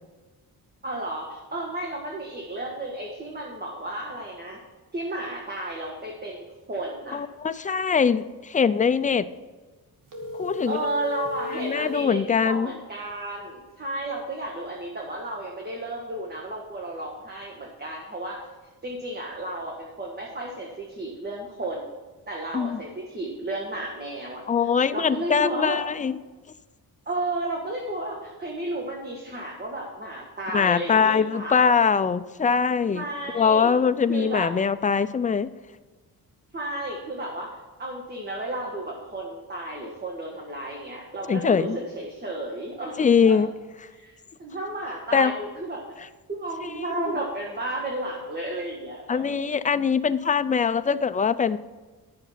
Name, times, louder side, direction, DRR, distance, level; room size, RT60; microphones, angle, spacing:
voice 1, 0.8-4.6 4.9-7.2 10.7-18.4 18.8-21.9 22.3-24.4 24.9-25.8 27.0-31.7 32.9-33.7 34.1-34.5 36.5-37.5 37.8-43.4 43.9-45.8 46.3-49.2, right 1 dB, 25° right, -1 dB, 1.6 m, -33 dB
voice 2, 7.1-9.2 10.4-10.8 11.5-12.7 22.5-22.8 24.5-26.2 30.5-33.0 33.3-35.5 41.3-41.8 43.0-43.5 45.1-45.3 46.0-46.1 46.9-47.1 49.1-51.6, left 6 dB, 20° left, 12 dB, 0.4 m, -22 dB
sound 1, 10.1-12.2, left 3 dB, 55° right, 1.8 m, -34 dB
10.5 x 6.8 x 5.7 m, 1.3 s
wide cardioid pair, 115°, 38 cm